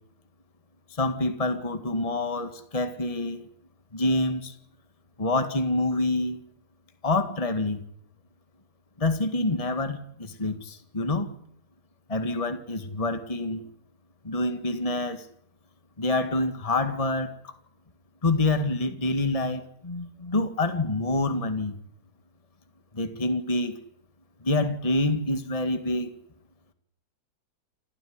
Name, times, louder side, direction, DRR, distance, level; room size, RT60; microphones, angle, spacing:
voice 1, 0.9-3.5 3.9-4.5 5.2-6.4 7.0-7.9 9.0-11.3 12.1-13.7 14.2-15.3 16.0-17.5 18.2-21.8 22.9-23.8 24.4-26.1, left 2 dB, 20° left, 9 dB, 2.0 m, -27 dB
29.0 x 14.0 x 9.7 m, 0.71 s
omnidirectional pair, 1.7 m